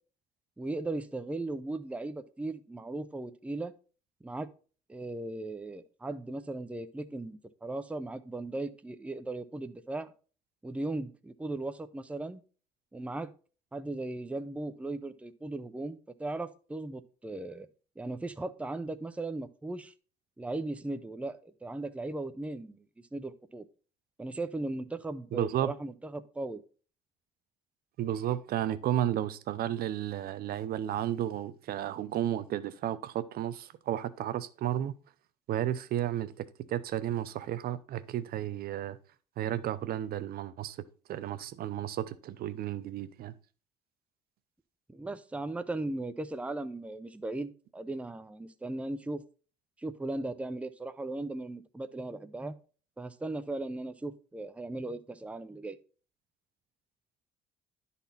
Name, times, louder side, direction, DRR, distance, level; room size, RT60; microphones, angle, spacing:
voice 1, 0.6-3.7 4.2-4.5 4.9-10.1 10.6-12.4 12.9-13.3 13.7-17.7 18.0-19.9 20.4-22.8 23.1-23.6 24.2-26.6 44.9-49.2 49.8-52.6 53.0-55.8, right 2 dB, 5° right, 0.6 m, -37 dB
voice 2, 25.3-25.7 28.0-35.0 35.5-39.0 39.4-40.8 41.1-43.3, right 11 dB, 65° right, 0.7 m, -33 dB
11.0 x 4.2 x 4.0 m
cardioid pair, 110°, 17 cm